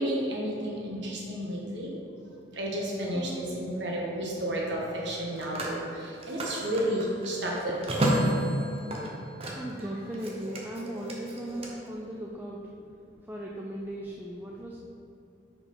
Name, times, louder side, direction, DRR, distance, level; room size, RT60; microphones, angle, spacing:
voice 1, 0.0-1.9 2.5-7.9, right 1 dB, 65° right, -3 dB, 1.4 m, -32 dB
Telephone, 2.8-3.0 5.0-9.8 10.1-11.7, right 1 dB, 30° right, 0.8 m, -31 dB
voice 2, 3.1-3.6 7.7-7.8 9.6-12.7 13.3-14.8, right 1 dB, 10° right, -3 dB, 0.4 m, -37 dB
5.6 x 4.8 x 5.4 m, 2.6 s
head